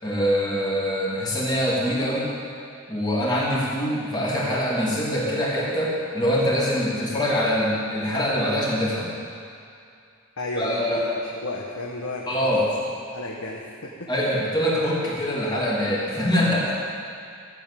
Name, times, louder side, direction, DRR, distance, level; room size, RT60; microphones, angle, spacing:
voice 1, 0.0-2.3 2.9-9.1 10.6-11.0 12.3-12.7 14.1-16.7, equal, 20° left, -6 dB, 3.3 m, -24 dB
voice 2, 10.4-11.1 11.4-12.3 12.5-12.6 13.1-14.3, left 2 dB, 90° left, -2 dB, 1.4 m, -32 dB
14.5 x 8.3 x 8.5 m, 2.4 s
head